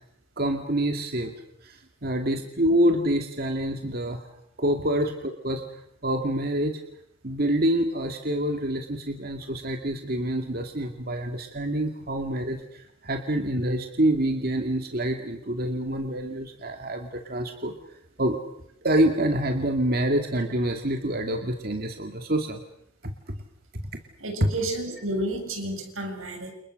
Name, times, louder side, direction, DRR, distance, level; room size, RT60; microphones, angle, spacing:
voice 1, 0.4-1.3 1.6-4.2 4.6-5.6 6.0-6.8 7.2-17.7 18.2-18.4 18.8-22.6 23.3-23.4 24.4-24.5, right 1 dB, 50° right, 4 dB, 2.3 m, -26 dB
voice 2, 24.2-26.5, right 1 dB, 85° right, 4 dB, 7.9 m, -31 dB
30.0 x 29.0 x 6.6 m, 0.74 s
head